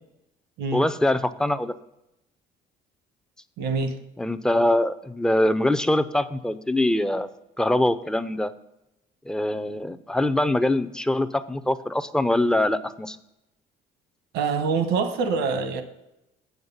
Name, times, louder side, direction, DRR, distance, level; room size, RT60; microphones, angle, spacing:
voice 1, 0.7-1.7 4.2-7.3 7.6-8.5 9.3-13.2, left 1 dB, 5° left, 0.5 m, -23 dB
voice 2, 3.6-4.0 14.3-15.8, right 5 dB, 85° right, 1.2 m, -25 dB
8.0 x 7.3 x 5.5 m
cardioid pair, 110°, 17 cm